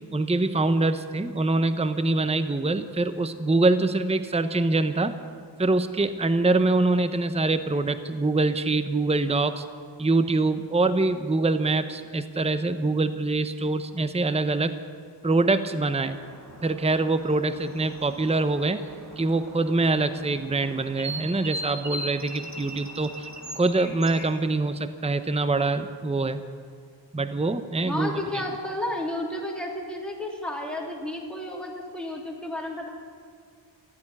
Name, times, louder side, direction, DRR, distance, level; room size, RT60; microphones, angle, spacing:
voice 1, 0.1-5.1 5.6-9.6 10.0-14.8 15.2-16.2 16.6-18.8 19.2-23.3 23.6-26.4 27.1-28.1, right 2 dB, 15° right, 11 dB, 0.7 m, -24 dB
sound 1, 15.9-24.4, right 1 dB, 40° right, 1.9 m, -40 dB
voice 2, 27.8-32.9, left 1 dB, ahead, -3 dB, 3.1 m, -32 dB
14.5 x 8.9 x 9.9 m, 2.2 s
wide cardioid pair, 50°, 45 cm